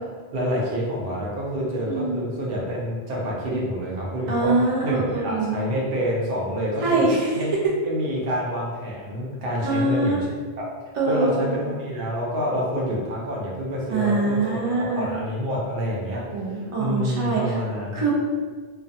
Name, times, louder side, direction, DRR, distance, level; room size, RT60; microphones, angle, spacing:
voice 1, 0.3-4.5 4.8-7.0 7.3-7.5 7.8-10.2 11.1-16.2 16.5-18.0, equal, 65° right, -4 dB, 0.8 m, -27 dB
voice 2, 1.9-2.2 4.3-5.6 6.8-7.3 9.6-10.2 10.9-11.7 13.9-15.1 16.3-17.5 17.9-18.1, right 3 dB, 45° right, -4 dB, 0.5 m, -23 dB
2.4 x 2.3 x 2.6 m, 1.5 s
omnidirectional pair, 1.1 m